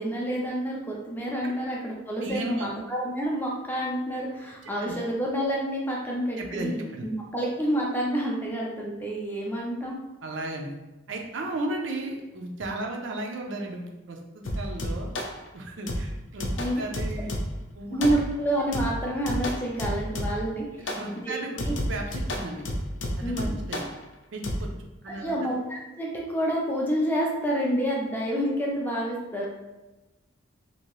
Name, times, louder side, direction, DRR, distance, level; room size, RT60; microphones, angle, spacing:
voice 1, 0.0-10.0 16.6-16.8 17.9-21.4 23.2-23.6 25.2-29.5, right 1 dB, 10° left, -3 dB, 0.5 m, -28 dB
voice 2, 2.2-2.7 4.8-4.9 6.4-7.1 10.2-10.8 11.1-15.1 15.5-17.4 17.7-18.0 20.8-22.6 23.2-23.9 24.3-24.7 25.0-25.4, right 2 dB, 70° right, 2 dB, 0.5 m, -35 dB
sound 1, 14.4-15.4 15.9-17.7 18.0-18.4 18.7-20.5 20.9-21.1 21.6-24.0 24.4-24.6, equal, 65° left, 0.5 m, -31 dB
2.8 x 2.6 x 3.0 m, 1.0 s
head